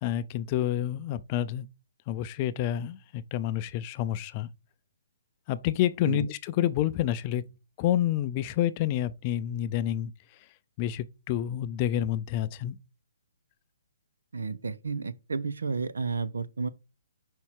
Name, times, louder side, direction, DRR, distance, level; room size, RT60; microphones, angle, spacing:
voice 1, 0.0-1.7 2.1-4.5 5.5-7.5 7.8-10.1 10.8-12.8, left 12 dB, 30° left, 0.4 m, -28 dB
voice 2, 14.3-16.7, right 4 dB, 85° right, 0.7 m, -31 dB
5.5 x 4.5 x 4.6 m
hypercardioid pair, 150°, 0 cm